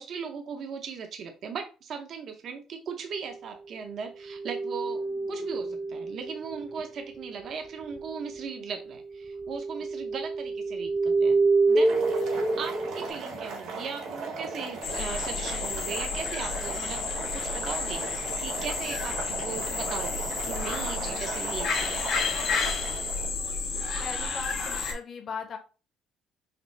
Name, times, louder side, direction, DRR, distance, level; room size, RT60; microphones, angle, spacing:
voice 1, 0.0-11.4 11.7-22.1, right 6 dB, 55° right, 5 dB, 0.7 m, -38 dB
sound 1, 4.3-7.4 7.8-13.1, right 3 dB, 5° right, 0.6 m, -28 dB
Boiling, 11.7-23.3, right 3 dB, 80° right, 1.7 m, -37 dB
sound 2, 14.8-24.9, left 4 dB, 65° left, 1.3 m, -31 dB
voice 2, 24.0-25.6, left 5 dB, 40° left, 4 dB, 1.0 m, -38 dB
5.8 x 2.0 x 3.2 m, 0.33 s
cardioid pair, 120°, 0 cm